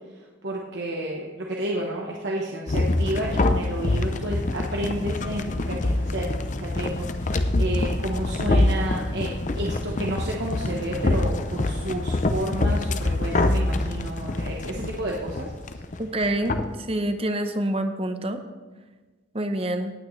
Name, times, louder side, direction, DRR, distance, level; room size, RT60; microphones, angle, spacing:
voice 1, 0.4-9.3 9.6-15.5, right 1 dB, 60° right, -2 dB, 1.1 m, -31 dB
sound 1, 2.7-16.7, left 2 dB, 40° left, 0.5 m, -25 dB
voice 2, 16.0-16.6 16.9-18.4 19.3-19.9, right 1 dB, 30° right, 8 dB, 0.8 m, -26 dB
18.0 x 8.8 x 3.2 m, 1.3 s
head